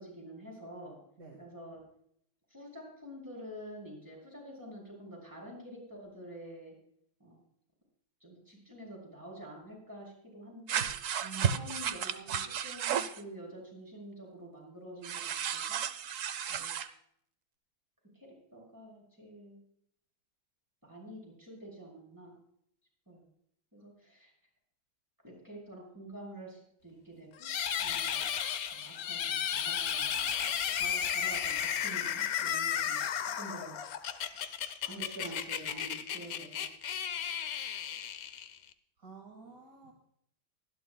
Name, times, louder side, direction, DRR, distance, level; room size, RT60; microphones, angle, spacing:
voice 1, 0.0-1.0 1.4-1.8 2.5-6.7 7.2-7.4 8.2-10.9 11.3-15.2 15.5-15.8 16.5-16.7 18.1-19.6 20.8-22.3 23.1-23.3 23.7-24.3 25.2-27.5 27.8-28.2 28.7-33.8 34.3-34.5 34.8-36.7, right 1 dB, 10° right, -3 dB, 6.4 m, -48 dB
sound 1, 10.7-13.2 15.0-16.9, right 8 dB, 80° right, 0.7 m, -33 dB
voice 2, 11.2-11.5 39.0-39.9, right 5 dB, 45° right, 1 dB, 2.2 m, -49 dB
sound 2, 27.4-38.7, left 9 dB, 60° left, 1.0 m, -34 dB
24.5 x 11.5 x 2.2 m, 0.68 s
omnidirectional pair, 2.2 m